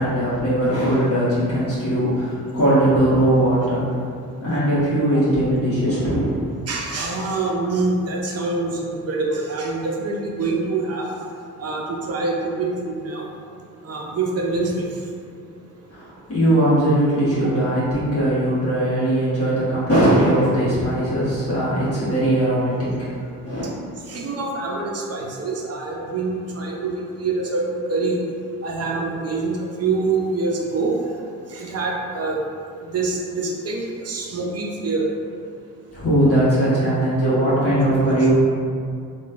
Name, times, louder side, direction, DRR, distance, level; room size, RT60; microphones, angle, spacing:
voice 1, 0.0-3.8 4.4-6.5 15.9-23.7 35.9-38.3, right 1 dB, 40° left, -11 dB, 1.1 m, -20 dB
voice 2, 6.7-11.1 11.6-13.3 13.8-14.9 24.1-28.2 28.6-30.9 31.5-32.4 32.8-35.1, right 3 dB, 45° right, -1 dB, 0.5 m, -25 dB
2.9 x 2.2 x 2.4 m, 2.3 s
supercardioid pair, 70°, 36 cm